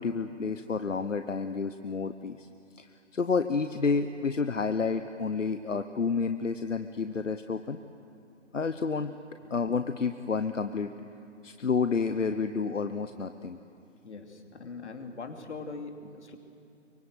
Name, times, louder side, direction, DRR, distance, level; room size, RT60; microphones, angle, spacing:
voice 1, 0.0-2.5 2.8-7.8 8.5-9.2 9.5-10.9 11.4-13.6, left 5 dB, 90° left, 9 dB, 1.0 m, -30 dB
voice 2, 14.0-16.4, left 3 dB, 65° left, 4 dB, 2.9 m, -42 dB
24.0 x 24.0 x 7.9 m, 2.6 s
figure-of-eight pair, 140°, 37 cm